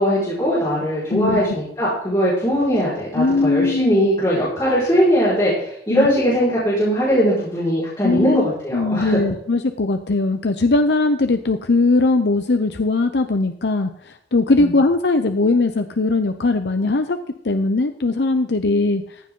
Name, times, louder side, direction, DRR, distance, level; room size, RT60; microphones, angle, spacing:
voice 1, 0.0-9.2 14.6-14.7, equal, 20° left, -10 dB, 4.9 m, -20 dB
voice 2, 1.1-1.4 3.2-4.1 5.9-6.1 8.0-8.4 8.7-13.9 14.3-17.2 17.4-19.0, left 3 dB, 75° left, 8 dB, 0.7 m, -19 dB
15.0 x 7.6 x 3.8 m, 0.69 s
head